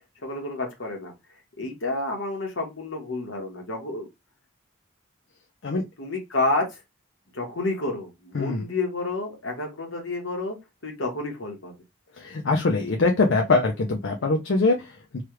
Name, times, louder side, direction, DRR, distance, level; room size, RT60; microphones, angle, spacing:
voice 1, 0.2-1.1 1.6-4.1 6.0-6.8 7.3-10.6 10.8-11.7, left 2 dB, 85° left, 2 dB, 1.2 m, -29 dB
voice 2, 12.2-15.2, left 3 dB, 70° left, 2 dB, 0.5 m, -23 dB
3.2 x 2.3 x 3.0 m, 0.22 s
head